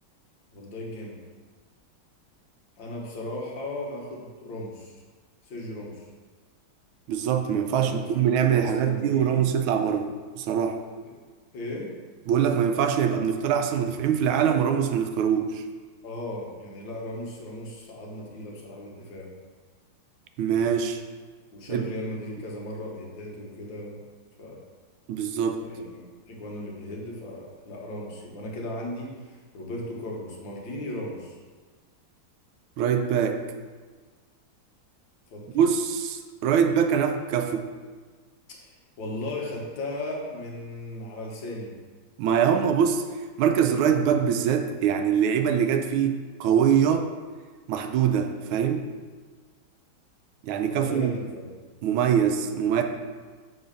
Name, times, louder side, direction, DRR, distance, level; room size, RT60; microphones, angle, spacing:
voice 1, 0.5-1.2 2.8-4.9 5.5-6.1 7.8-9.4 11.0-11.1 11.5-11.9 16.0-19.3 21.5-24.0 24.4-24.6 25.6-26.0 26.3-31.4 35.3-35.4 38.6-41.7 50.6-51.5, left 1 dB, 65° left, -2 dB, 1.8 m, -36 dB
voice 2, 7.1-10.1 10.4-10.8 12.3-15.6 20.4-21.0 21.7-21.8 25.1-25.6 32.8-33.4 35.5-37.7 42.2-43.0 43.4-47.1 47.7-48.9 50.4-51.1 51.8-52.8, right 8 dB, 80° right, 6 dB, 1.4 m, -23 dB
6.5 x 3.8 x 5.1 m, 1.4 s
omnidirectional pair, 2.2 m